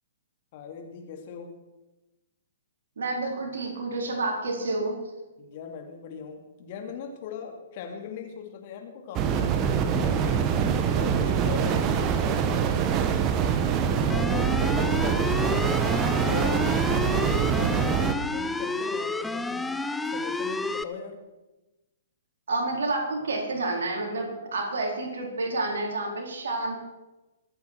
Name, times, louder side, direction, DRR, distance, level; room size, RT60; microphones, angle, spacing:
voice 1, 0.5-1.5 5.4-13.3 14.1-18.0 18.3-21.2, left 6 dB, 45° left, 4 dB, 2.6 m, -39 dB
voice 2, 3.0-5.0 22.5-26.8, right 2 dB, 65° right, 0 dB, 4.2 m, -29 dB
sound 1, 9.1-18.1, right 7 dB, 30° right, 1.2 m, -24 dB
sound 2, 14.1-20.8, left 3 dB, 5° left, 0.6 m, -30 dB
23.0 x 9.2 x 4.6 m, 1.0 s
figure-of-eight pair, 115°, 0 cm